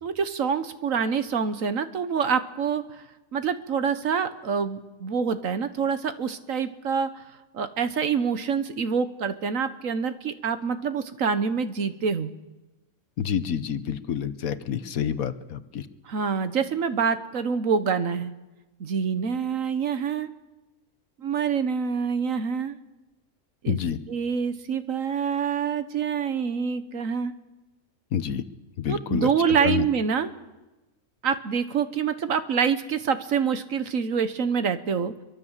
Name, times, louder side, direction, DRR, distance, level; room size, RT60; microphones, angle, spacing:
voice 1, 0.0-3.0 3.3-7.2 7.5-12.3 16.0-18.3 18.8-20.3 21.2-22.8 23.6-23.8 24.1-27.3 28.9-30.3 31.2-35.1, right 6 dB, 65° right, 11 dB, 1.5 m, -26 dB
voice 2, 13.2-15.9 23.7-24.0 28.1-28.4 28.8-29.3 29.6-29.8, left 8 dB, 70° left, 12 dB, 1.4 m, -28 dB
24.0 x 23.5 x 7.4 m, 1.1 s
omnidirectional pair, 1.5 m